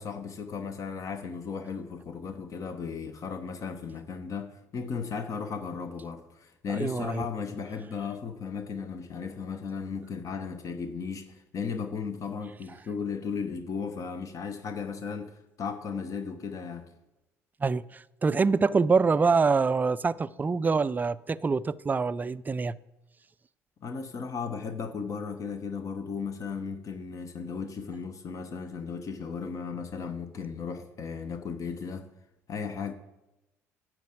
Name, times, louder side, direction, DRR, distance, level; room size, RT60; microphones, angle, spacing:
voice 1, 0.0-16.9 23.8-32.1 32.5-32.9, left 5 dB, 45° left, 0.9 m, -36 dB
voice 2, 6.7-7.3 17.6-22.8, right 4 dB, 20° right, 0.4 m, -25 dB
9.6 x 4.6 x 7.7 m
hypercardioid pair, 55°, 8 cm